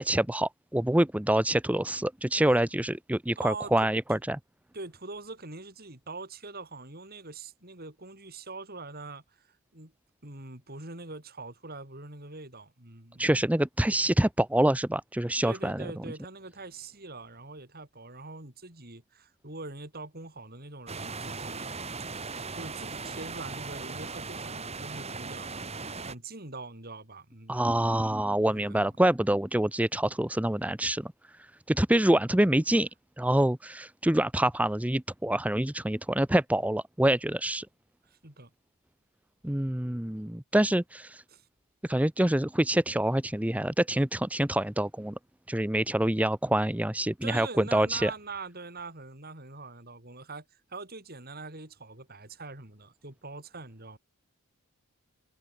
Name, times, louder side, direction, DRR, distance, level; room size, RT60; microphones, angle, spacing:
voice 1, 0.0-4.4 13.2-15.9 27.5-31.1 31.4-32.9 33.2-37.7 39.4-41.2 41.8-45.1 45.5-48.1, right 1 dB, 5° right, 0.7 m, -26 dB
voice 2, 3.4-4.2 4.7-9.9 10.2-13.4 15.4-21.7 22.0-28.9 31.9-32.0 38.1-38.5 41.3-41.5 47.2-54.0, right 3 dB, 45° right, 4.6 m, -43 dB
sound 1, 20.9-26.1, right 4 dB, 30° right, 3.4 m, -38 dB
head